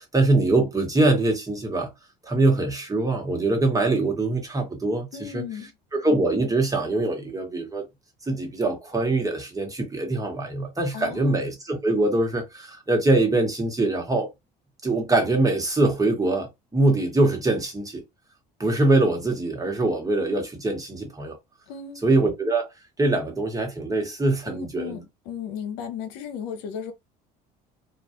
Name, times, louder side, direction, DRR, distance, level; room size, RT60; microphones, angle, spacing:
voice 1, 0.0-1.9 2.2-5.4 5.9-7.8 8.3-14.3 14.8-18.0 18.6-21.4 22.0-22.7 23.0-25.0, right 2 dB, 15° right, 1.2 m, -23 dB
voice 2, 5.1-5.7 10.9-11.4 21.7-22.0 24.5-26.9, left 8 dB, 85° left, 0.6 m, -35 dB
2.3 x 2.3 x 2.8 m
supercardioid pair, 75°, 20 cm